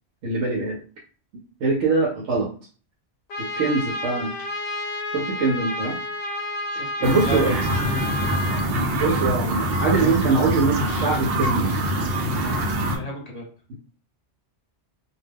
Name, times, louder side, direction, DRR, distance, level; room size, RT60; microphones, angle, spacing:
voice 1, 0.2-0.8 1.3-2.5 3.4-4.3 5.1-6.0 7.0-7.5 9.0-11.7, right 4 dB, 90° right, -2 dB, 1.0 m, -23 dB
Trumpet, 3.3-8.7, left 1 dB, 70° left, 0.8 m, -30 dB
voice 2, 6.8-8.3 12.8-13.4, right 1 dB, 35° left, -2 dB, 0.9 m, -33 dB
sound 1, 7.0-13.0, right 1 dB, 60° right, 0.8 m, -24 dB
2.3 x 2.2 x 3.4 m, 0.40 s
omnidirectional pair, 1.2 m